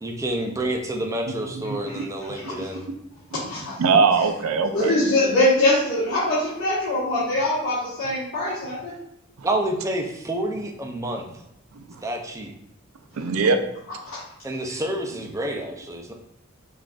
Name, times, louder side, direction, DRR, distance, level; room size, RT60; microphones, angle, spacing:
voice 1, 0.0-2.8 9.4-11.2 12.0-12.5 14.4-16.1, right 1 dB, 15° right, 2 dB, 0.4 m, -28 dB
voice 2, 1.7-2.1 2.6-3.0 3.8-5.0 7.2-7.3 11.8-11.9 13.2-13.6, right 4 dB, 85° right, 7 dB, 0.4 m, -22 dB
voice 3, 3.3-3.7 4.7-8.9 14.1-14.2, left 1 dB, 65° left, -10 dB, 1.4 m, -23 dB
5.7 x 2.5 x 2.4 m, 0.82 s
head